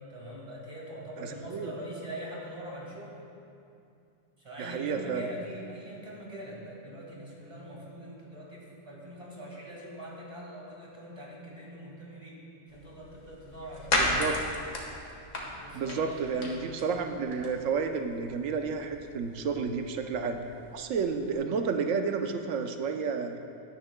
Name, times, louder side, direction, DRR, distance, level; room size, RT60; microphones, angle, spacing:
voice 1, 0.0-3.2 4.4-14.3 15.5-16.5, equal, 25° right, -4 dB, 2.0 m, -43 dB
voice 2, 1.2-1.7 4.6-5.2 14.0-14.3 15.7-20.5 20.7-23.5, right 5 dB, 90° right, 5 dB, 1.1 m, -31 dB
sound 1, 12.7-21.3, left 1 dB, 80° left, 1.8 m, -36 dB
16.0 x 10.0 x 2.2 m, 2.6 s
omnidirectional pair, 1.3 m